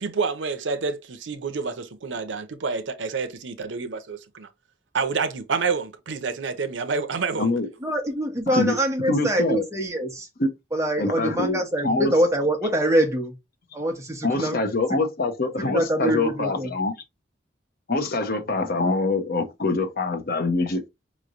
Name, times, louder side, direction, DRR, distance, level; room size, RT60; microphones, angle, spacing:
voice 1, 0.0-4.5 4.9-7.5, right 5 dB, 90° right, 0.6 m, -28 dB
voice 2, 7.8-10.3 10.7-13.3 13.7-14.6 14.9-15.0 15.6-16.7, right 1 dB, 15° right, 1.0 m, -24 dB
voice 3, 9.1-9.6 10.4-10.5 11.0-12.1 14.2-16.9 17.9-20.9, left 3 dB, 55° left, 0.8 m, -24 dB
5.0 x 3.1 x 2.5 m
head